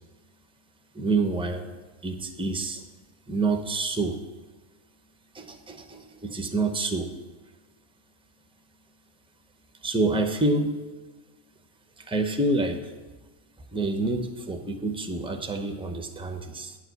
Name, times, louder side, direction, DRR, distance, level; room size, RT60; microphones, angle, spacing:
voice 1, 0.9-1.7 2.0-2.8 3.3-4.2 5.3-7.1 9.8-10.8 12.0-12.9 13.7-16.8, right 2 dB, 5° right, 5 dB, 0.4 m, -27 dB
9.7 x 4.9 x 7.9 m, 1.2 s
omnidirectional pair, 1.5 m